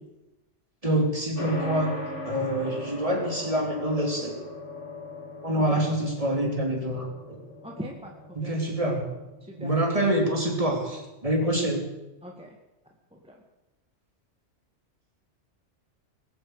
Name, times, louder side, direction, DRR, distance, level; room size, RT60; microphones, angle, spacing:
voice 1, 0.8-1.9 2.2-4.4 5.4-7.4 8.3-9.1 9.6-11.9, right 1 dB, 30° right, 1 dB, 3.1 m, -26 dB
sound 1, 1.4-11.0, left 2 dB, 75° left, 2.6 m, -40 dB
voice 2, 5.6-5.9 7.6-8.8 9.4-9.7 11.4-11.7 12.2-12.6 13.1-13.4, equal, 5° right, 0 dB, 1.7 m, -41 dB
20.5 x 8.1 x 8.1 m, 1.0 s
omnidirectional pair, 1.3 m